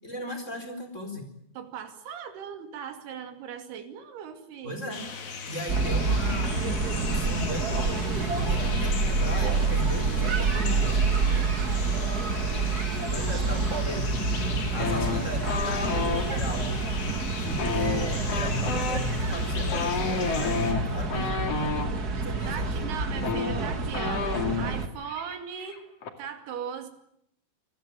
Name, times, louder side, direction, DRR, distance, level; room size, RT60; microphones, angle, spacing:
voice 1, 0.0-1.3 4.6-5.1 5.5-6.6 6.9-11.1 13.1-14.1 14.7-16.8 17.4-21.4 22.2-22.7, equal, 15° left, 6 dB, 4.2 m, -36 dB
voice 2, 1.6-5.0 13.0-14.1 14.4-14.9 22.5-24.3 24.6-25.8 26.2-26.9, right 8 dB, 65° right, 6 dB, 4.3 m, -39 dB
sound 1, 4.9-20.7, left 5 dB, 65° left, 5.1 m, -38 dB
sound 2, 5.7-24.9, right 4 dB, 80° right, 0.8 m, -28 dB
sound 3, 14.8-16.3 17.5-21.9 22.8-22.9 23.1-24.8 25.1-25.4 25.6-26.1, left 5 dB, 45° left, 2.7 m, -30 dB
27.5 x 19.5 x 8.9 m, 0.74 s
omnidirectional pair, 5.2 m